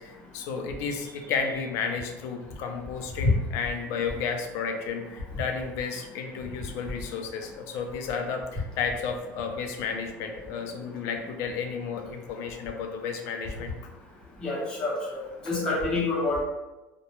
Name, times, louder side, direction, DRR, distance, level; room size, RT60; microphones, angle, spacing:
voice 1, 0.0-13.7 15.5-15.6, left 5 dB, 55° left, 4 dB, 0.4 m, -32 dB
voice 2, 0.8-1.3 14.4-15.2 15.4-16.4, left 2 dB, 15° left, -5 dB, 0.7 m, -28 dB
2.8 x 2.1 x 3.0 m, 1.1 s
cardioid pair, 175°, 6 cm